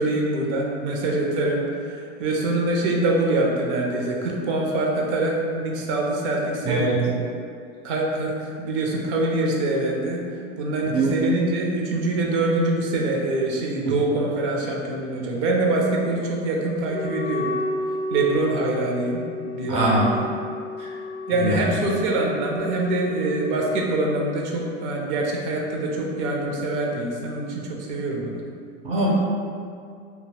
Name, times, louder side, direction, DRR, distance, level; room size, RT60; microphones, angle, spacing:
voice 1, 0.0-7.1 7.8-10.2 10.6-17.6 18.1-19.2 19.5-20.3 21.3-28.4, right 2 dB, 65° right, -1 dB, 0.6 m, -24 dB
voice 2, 6.6-7.0 10.9-11.1 13.8-13.9 19.7-20.1 20.8-20.9 21.4-21.6 28.8-29.1, right 2 dB, 15° right, -5 dB, 0.4 m, -22 dB
Wind instrument woodwind instrument, 16.9-23.9, left 2 dB, 65° left, 0.5 m, -32 dB
2.3 x 2.2 x 3.1 m, 2.3 s
supercardioid pair, 115°, 37 cm